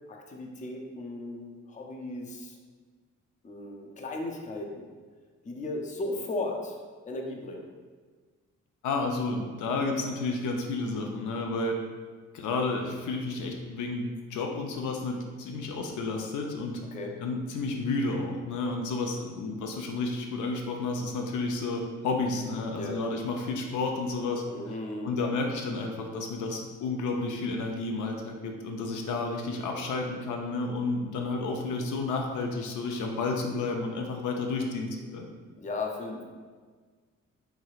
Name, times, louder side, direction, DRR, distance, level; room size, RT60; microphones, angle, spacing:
voice 1, 0.1-2.5 3.4-4.9 5.4-6.8 7.1-7.7 16.9-17.1 22.8-23.0 24.5-25.3 35.6-36.2, left 2 dB, 25° left, 1 dB, 0.5 m, -36 dB
voice 2, 8.8-11.8 12.3-16.8 17.2-24.8 25.0-35.3, left 3 dB, 75° left, 2 dB, 0.5 m, -31 dB
3.1 x 2.7 x 2.4 m, 1.5 s
cardioid pair, 70°, 30 cm